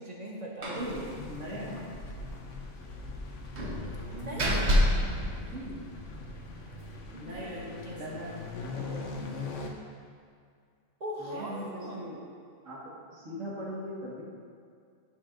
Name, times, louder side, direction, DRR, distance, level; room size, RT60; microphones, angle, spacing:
voice 1, 0.0-1.1 1.5-1.6 4.1-4.9 7.1-8.0 11.0-12.1, right 1 dB, 35° right, -2 dB, 1.2 m, -40 dB
Slam, 0.6-0.9 1.2-1.3 1.7-1.8 3.6-6.2, equal, 60° right, 1.4 m, -28 dB
voice 2, 0.6-1.8 5.5-5.8 7.1-8.3 8.6-9.1 11.2-12.2 12.6-12.8 13.1-14.2, equal, 85° right, -6 dB, 2.1 m, -40 dB
sound 1, 0.8-9.7, left 3 dB, 70° left, 1.2 m, -41 dB
11.5 x 7.2 x 2.6 m, 2.2 s
omnidirectional pair, 1.3 m